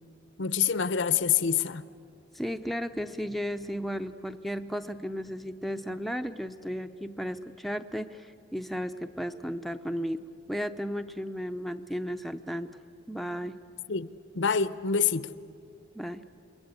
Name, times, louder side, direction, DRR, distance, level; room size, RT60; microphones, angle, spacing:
voice 1, 0.4-1.8 13.9-14.1 14.3-15.3, left 7 dB, 70° left, 0.8 m, -26 dB
voice 2, 2.3-12.7 13.1-13.6 15.9-16.3, equal, ahead, 0.6 m, -34 dB
28.5 x 22.0 x 8.3 m
head